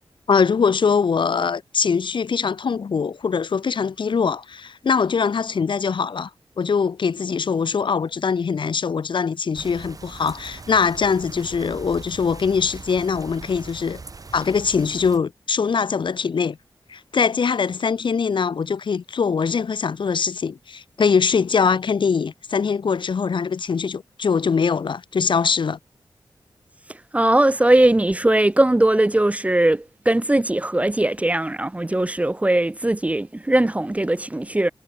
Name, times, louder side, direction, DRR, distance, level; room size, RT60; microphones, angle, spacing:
voice 1, 0.3-6.3 6.6-14.0 14.3-16.6 16.9-25.8, left 5 dB, 65° left, 1.0 m, -22 dB
sound 1, 9.5-15.2, right 4 dB, 40° right, 2.5 m, -40 dB
voice 2, 27.1-34.7, right 1 dB, 15° right, 0.7 m, -19 dB
wide cardioid pair, 120°, 9 cm